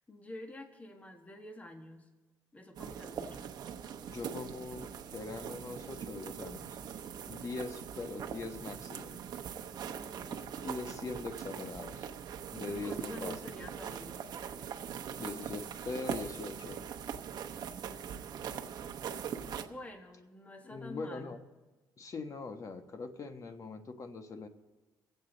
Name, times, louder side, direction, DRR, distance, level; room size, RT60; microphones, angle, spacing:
voice 1, 0.1-2.1 2.5-3.6 9.9-10.7 12.7-14.3 17.8-18.5 19.4-21.3, left 1 dB, 20° left, 5 dB, 1.4 m, -49 dB
sound 1, 2.8-19.6, right 8 dB, 60° right, 0.9 m, -42 dB
voice 2, 4.1-6.8 7.3-9.2 10.3-12.1 12.5-13.4 15.2-16.8 20.6-21.4 22.0-24.5, left 3 dB, 45° left, 7 dB, 1.2 m, -42 dB
22.5 x 8.0 x 4.0 m, 1.2 s
cardioid pair, 95°, 8 cm